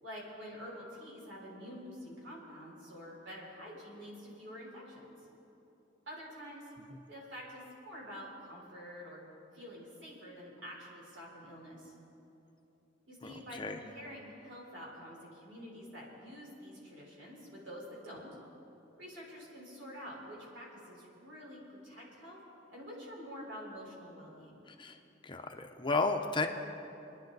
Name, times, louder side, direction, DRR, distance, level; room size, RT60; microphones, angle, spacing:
voice 1, 0.0-5.0 6.1-6.7 7.1-9.2 9.5-11.9 13.1-18.3 19.0-22.4 22.7-24.6, equal, 65° right, -4 dB, 4.0 m, -47 dB
voice 2, 13.2-13.8 24.7-25.0 25.2-26.5, left 3 dB, 25° left, 5 dB, 0.7 m, -33 dB
24.0 x 10.5 x 4.0 m, 3.0 s
head